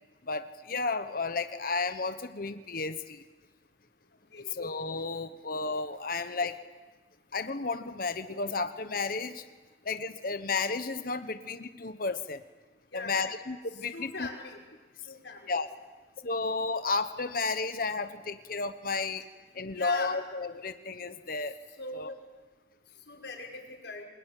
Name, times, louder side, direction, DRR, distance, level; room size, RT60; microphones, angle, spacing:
voice 1, 0.3-3.2 4.5-6.6 7.3-9.4 9.8-12.4 12.9-14.3 15.5-15.7 16.2-19.2 19.5-21.6 21.9-22.1, left 4 dB, 50° left, 10 dB, 1.1 m, -32 dB
voice 2, 4.3-4.7 12.9-13.4 13.9-14.6 15.0-15.5 19.7-20.2 21.7-22.2 23.1-24.0, left 3 dB, 80° left, 0 dB, 6.1 m, -41 dB
27.5 x 22.0 x 9.2 m, 1.3 s
head